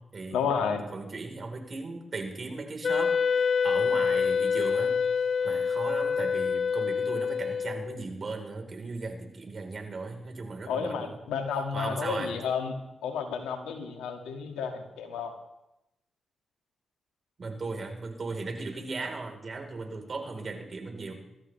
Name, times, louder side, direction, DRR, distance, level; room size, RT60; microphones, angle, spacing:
voice 1, 0.3-0.8 10.7-12.7 13.0-15.3, left 6 dB, 85° left, 4 dB, 1.9 m, -31 dB
voice 2, 0.9-5.0 5.4-11.2 11.7-12.3 17.4-21.1, right 3 dB, 50° right, 3 dB, 3.9 m, -37 dB
Wind instrument woodwind instrument, 2.8-8.0, left 6 dB, 55° left, 0.5 m, -26 dB
23.0 x 13.5 x 3.3 m, 0.88 s
hypercardioid pair, 40°, 0 cm